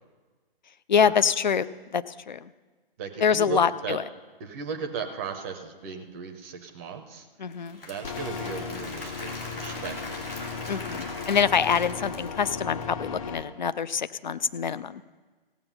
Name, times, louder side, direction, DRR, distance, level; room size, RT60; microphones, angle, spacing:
voice 1, 0.9-2.5 3.2-4.0 7.4-7.8 10.7-15.0, left 7 dB, 50° left, 14 dB, 0.5 m, -25 dB
voice 2, 3.0-4.0 4.4-7.3 7.8-10.0, right 5 dB, 15° right, 5 dB, 0.6 m, -36 dB
Applause / Crowd, 7.5-12.8, left 2 dB, 75° left, 2.9 m, -40 dB
sound 1, 8.0-13.4, left 5 dB, 35° left, 0.9 m, -36 dB
16.5 x 7.0 x 5.5 m, 1.3 s
figure-of-eight pair, 135°, 29 cm